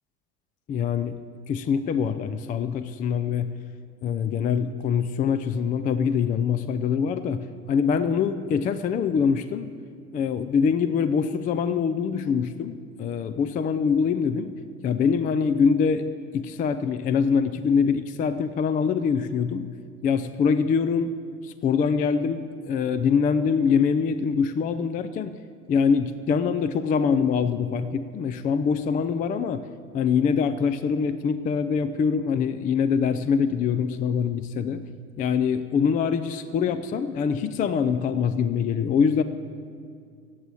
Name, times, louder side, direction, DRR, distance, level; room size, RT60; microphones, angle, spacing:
voice 1, 0.7-1.2 1.5-3.6 4.0-9.7 10.1-14.5 14.8-16.1 16.3-19.7 20.0-21.1 21.4-25.3 25.7-29.6 29.9-34.8 35.2-39.2, left 6 dB, 20° left, 11 dB, 0.4 m, -24 dB
16.0 x 8.1 x 8.8 m, 2.2 s
figure-of-eight pair, 75°, 46 cm